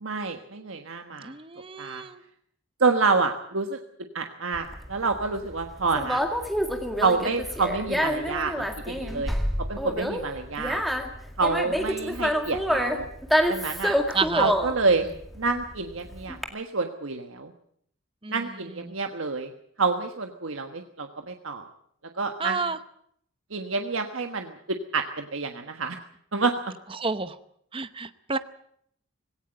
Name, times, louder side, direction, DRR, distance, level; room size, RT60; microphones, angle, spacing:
voice 1, 0.0-1.3 1.8-2.0 2.8-3.8 4.1-6.2 7.0-9.3 9.7-10.8 11.4-13.1 13.5-14.0 14.4-15.1 15.4-17.5 18.3-19.5 19.8-21.7 22.2-22.6 23.5-26.0 26.3-26.5, right 4 dB, 80° right, 5 dB, 1.4 m, -28 dB
voice 2, 1.2-2.2 14.1-14.5 18.2-18.9 22.4-22.8 26.9-27.4 27.7-28.4, right 4 dB, 25° right, 12 dB, 0.8 m, -30 dB
Conversation, 4.5-16.4, equal, ahead, 2.1 m, -27 dB
18.0 x 18.0 x 9.0 m, 0.67 s
head